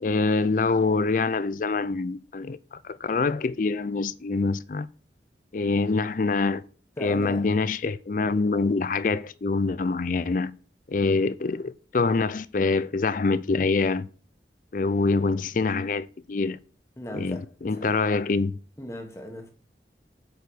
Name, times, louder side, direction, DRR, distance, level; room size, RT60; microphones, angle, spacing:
voice 1, 0.0-4.9 5.5-6.6 7.0-10.5 10.9-14.1 14.7-16.6 17.1-18.6, left 3 dB, 45° left, 0.4 m, -25 dB
voice 2, 7.0-7.5 17.0-18.0 18.8-19.5, left 1 dB, 15° left, 1.3 m, -38 dB
8.3 x 4.8 x 6.2 m
head